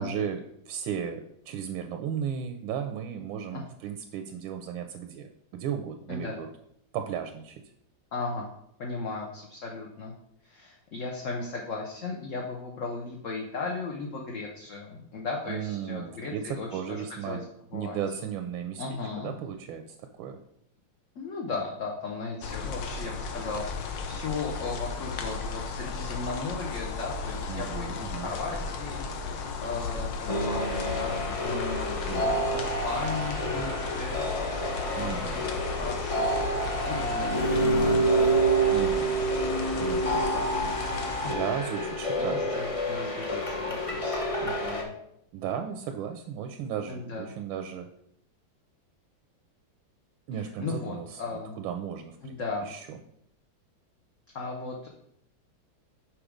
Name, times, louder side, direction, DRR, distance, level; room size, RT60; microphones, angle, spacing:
voice 1, 0.0-6.5 6.9-7.6 15.5-17.4 17.7-20.4 27.5-28.3 32.1-32.5 35.0-35.4 38.7-39.1 39.8-40.2 41.3-42.5 45.3-47.9 50.3-51.2 51.6-53.0, right 8 dB, 85° right, 6 dB, 1.4 m, -35 dB
voice 2, 8.1-8.5 8.8-10.1 10.4-17.5 17.7-18.0 18.8-19.3 21.1-29.1 29.6-34.2 34.9-38.8 40.1-40.7 42.2-44.9 46.9-47.3 50.6-51.5 52.2-52.7 54.3-54.9, left 3 dB, 50° left, 0 dB, 1.0 m, -36 dB
sound 1, 22.4-41.3, left 4 dB, 70° left, 1.4 m, -35 dB
sound 2, 30.3-44.8, right 1 dB, 35° left, 0.5 m, -28 dB
6.1 x 5.0 x 5.0 m, 0.74 s
omnidirectional pair, 2.1 m